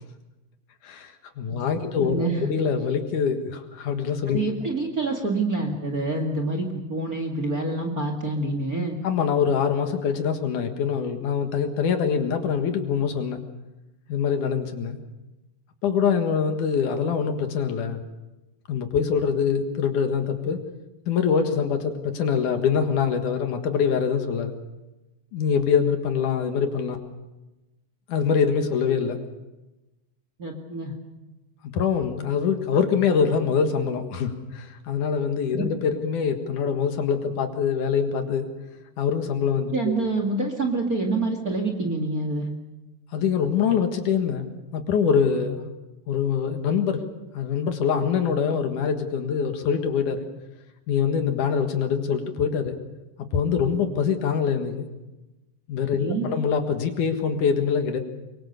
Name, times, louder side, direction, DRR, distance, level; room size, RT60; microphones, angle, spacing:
voice 1, 0.8-4.4 9.0-13.4 14.1-15.0 15.8-18.0 18.7-20.6 21.1-24.6 25.3-27.0 28.1-29.2 31.7-38.5 39.0-40.0 43.1-45.7 46.1-47.0 47.3-50.3 50.9-52.8 53.3-54.9 55.7-58.0, left 6 dB, 65° left, 6 dB, 3.0 m, -24 dB
voice 2, 1.5-2.5 4.3-9.0 30.4-30.9 35.5-35.7 39.7-42.5 56.0-56.3, right 3 dB, 30° right, 4 dB, 2.1 m, -27 dB
23.5 x 23.5 x 6.9 m, 1.1 s
omnidirectional pair, 3.9 m